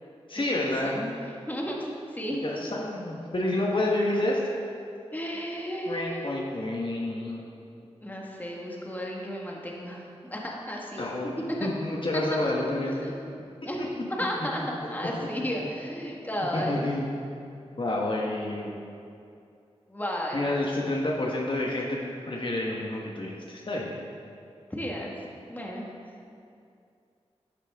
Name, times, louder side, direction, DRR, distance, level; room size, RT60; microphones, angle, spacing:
voice 1, 0.3-1.0 2.4-4.4 5.9-7.4 11.0-13.1 13.8-13.9 15.0-15.1 16.5-17.1 17.4-17.5 17.8-18.7 20.3-22.0 22.3-24.0, left 1 dB, 50° left, -2 dB, 1.3 m, -29 dB
voice 2, 1.5-2.4 5.1-6.4 8.0-11.1 11.6-11.7 12.1-12.4 13.0-13.1 13.7-13.9 14.2-16.9 19.9-20.5 24.7-25.1 25.5-25.9, equal, 15° left, -2 dB, 1.7 m, -33 dB
12.5 x 8.2 x 3.7 m, 2.5 s
wide cardioid pair, 55°, 11 cm